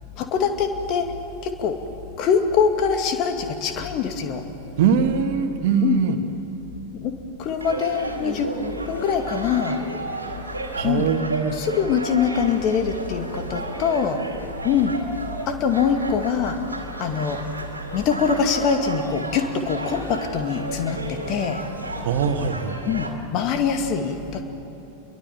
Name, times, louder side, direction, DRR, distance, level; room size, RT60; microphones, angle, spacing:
voice 1, 0.2-1.2 1.4-1.8 2.2-4.4 5.8-6.0 6.9-8.5 8.9-9.8 10.8-11.1 11.5-14.2 14.6-15.0 15.5-17.4 17.9-21.6 22.9-23.1 23.3-24.4, left 6 dB, 40° left, 6 dB, 2.3 m, -23 dB
voice 2, 4.8-6.2 10.7-11.6 22.0-22.8, right 7 dB, 50° right, 6 dB, 1.9 m, -22 dB
sound 1, 7.6-23.1, right 2 dB, 80° right, 2.4 m, -33 dB
28.0 x 23.0 x 7.4 m, 2.9 s
figure-of-eight pair, 90°, 0 cm